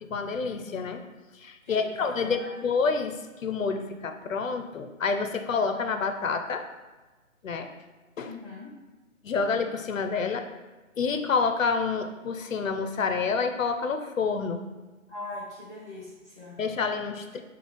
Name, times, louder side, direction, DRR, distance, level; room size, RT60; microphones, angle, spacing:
voice 1, 0.0-1.0 1.4-6.7 7.4-7.7 8.2-8.3 9.2-10.5 11.0-14.6 16.6-17.4, left 5 dB, 70° left, 7 dB, 0.5 m, -28 dB
voice 2, 1.6-2.6 8.2-8.7 15.1-16.6, left 2 dB, 10° right, -9 dB, 1.3 m, -41 dB
5.3 x 2.3 x 3.3 m, 1.2 s
hypercardioid pair, 175°, 41 cm